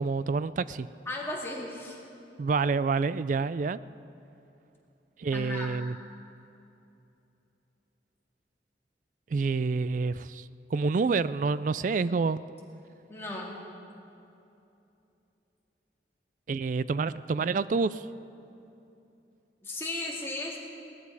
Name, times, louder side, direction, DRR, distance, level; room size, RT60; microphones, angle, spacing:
voice 1, 0.0-0.9 2.4-3.8 5.2-6.0 9.3-10.4 10.7-12.4 16.5-18.0, right 4 dB, 45° right, 17 dB, 0.3 m, -28 dB
voice 2, 1.1-2.0 5.3-5.7 13.1-13.5 19.6-20.6, left 2 dB, 15° left, -3 dB, 2.2 m, -35 dB
18.5 x 13.5 x 4.8 m, 2.8 s
head